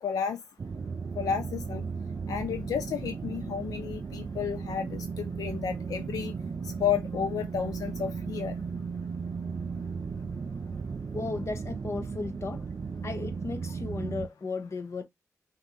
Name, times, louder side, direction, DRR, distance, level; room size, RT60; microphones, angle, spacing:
voice 1, 0.0-0.4 1.2-1.8 2.3-6.3 6.8-8.5, left 7 dB, 85° left, 0.5 m, -32 dB
sound 1, 0.6-14.3, right 5 dB, 45° right, 0.4 m, -36 dB
voice 2, 11.1-12.7 13.0-15.0, left 3 dB, 50° left, 0.9 m, -35 dB
5.2 x 2.6 x 3.1 m
cardioid pair, 65°, 6 cm